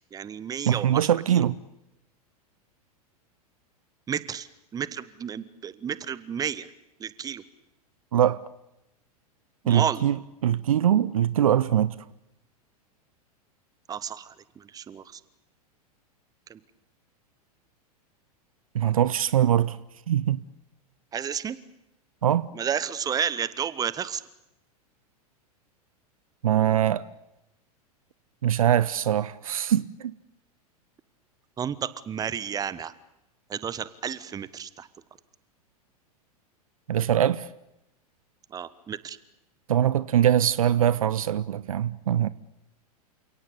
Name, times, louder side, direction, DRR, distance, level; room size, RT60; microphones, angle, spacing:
voice 1, 0.1-1.1 4.1-4.5 4.7-6.7 7.0-7.4 9.6-10.0 13.9-15.2 16.5-16.6 21.1-21.6 22.5-24.2 31.6-32.9 33.5-34.9 38.5-39.2, right 8 dB, 20° right, 1.2 m, -31 dB
voice 2, 0.7-1.6 8.1-8.4 9.7-10.2 10.4-12.0 18.7-19.8 20.1-20.4 22.2-22.5 26.4-27.1 28.4-30.1 36.9-37.5 39.7-42.3, right 10 dB, 60° right, 0.9 m, -22 dB
29.0 x 18.0 x 8.6 m
figure-of-eight pair, 95°, 20 cm